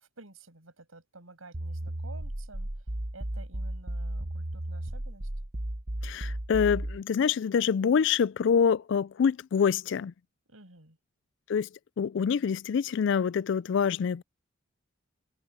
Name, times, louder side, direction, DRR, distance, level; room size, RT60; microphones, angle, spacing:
voice 1, 0.0-2.7 3.1-5.3 10.5-11.0, right 2 dB, 85° right, 6.6 m, -51 dB
sound 1, 1.5-7.0, right 1 dB, 40° right, 1.2 m, -34 dB
voice 2, 6.0-10.1 11.5-11.7 12.0-14.2, left 6 dB, 60° left, 0.3 m, -26 dB
head